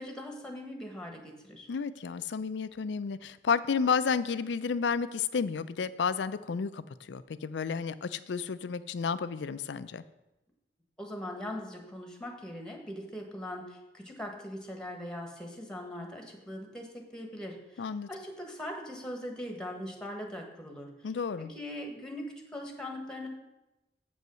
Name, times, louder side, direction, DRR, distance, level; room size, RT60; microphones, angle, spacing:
voice 1, 0.0-1.7 11.0-20.9 21.4-23.3, left 1 dB, 5° left, 2 dB, 1.3 m, -41 dB
voice 2, 1.7-10.0 17.8-18.1 21.0-21.5, left 5 dB, 85° left, 14 dB, 0.4 m, -31 dB
7.9 x 5.4 x 6.3 m, 0.97 s
head